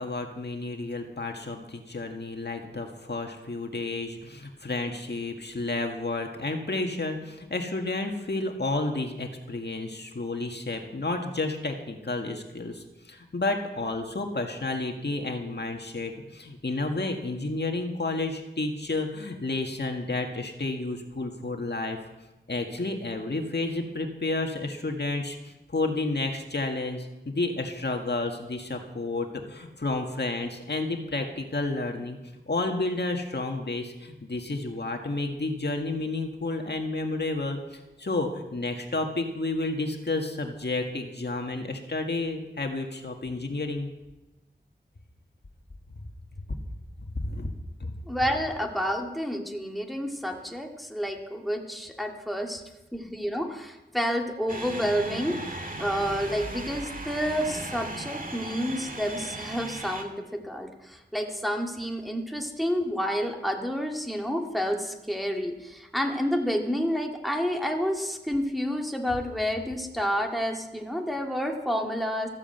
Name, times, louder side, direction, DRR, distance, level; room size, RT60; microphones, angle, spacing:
voice 1, 0.0-22.1 22.5-43.9 47.2-47.5 47.8-47.9, left 2 dB, 65° left, 3 dB, 1.7 m, -31 dB
voice 2, 48.1-52.6 52.9-72.3, equal, ahead, 2 dB, 2.1 m, -29 dB
sound 1, 54.5-60.0, right 2 dB, 50° right, 1.8 m, -37 dB
14.0 x 9.9 x 7.9 m, 1.0 s
wide cardioid pair, 50°, 19 cm